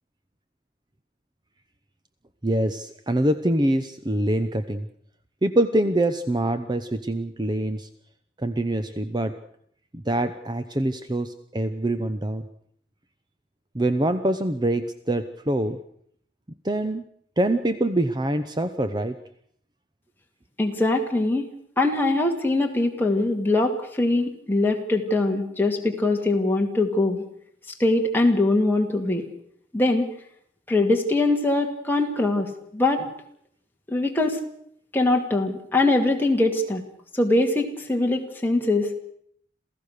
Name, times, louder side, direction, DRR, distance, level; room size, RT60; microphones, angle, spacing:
voice 1, 2.4-4.9 5.4-7.9 8.4-9.3 9.9-12.5 13.7-15.8 16.6-17.0 17.4-19.1, right 1 dB, 25° right, 10 dB, 0.8 m, -24 dB
voice 2, 20.6-21.5 21.8-27.2 27.8-29.3 29.7-30.1 30.7-33.1 33.9-34.4 34.9-36.8 37.1-39.0, left 2 dB, 10° left, 2 dB, 2.4 m, -22 dB
27.5 x 16.0 x 6.6 m, 0.68 s
head